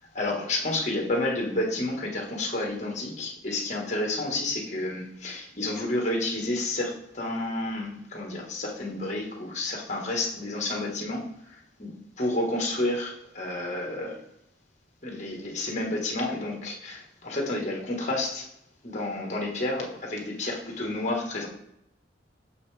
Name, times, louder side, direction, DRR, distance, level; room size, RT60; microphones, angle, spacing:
voice 1, 0.1-11.2 11.8-14.1 15.0-18.4 18.8-21.5, left 2 dB, 35° left, 0 dB, 1.5 m, -30 dB
6.6 x 5.3 x 3.4 m, 0.79 s
head